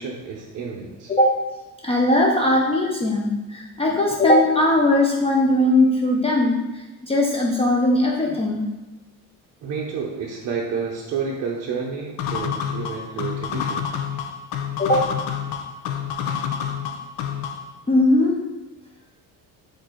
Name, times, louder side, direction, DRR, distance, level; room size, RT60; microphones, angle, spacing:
voice 1, 0.0-1.1 9.6-13.9, right 5 dB, 45° right, -2 dB, 0.6 m, -30 dB
voice 2, 1.8-8.7 14.8-15.1 17.9-18.4, left 1 dB, 15° left, -2 dB, 0.4 m, -19 dB
sound 1, 12.2-17.7, left 8 dB, 80° left, 0.6 m, -28 dB
4.3 x 2.6 x 4.4 m, 1.1 s
cardioid pair, 120°, 36 cm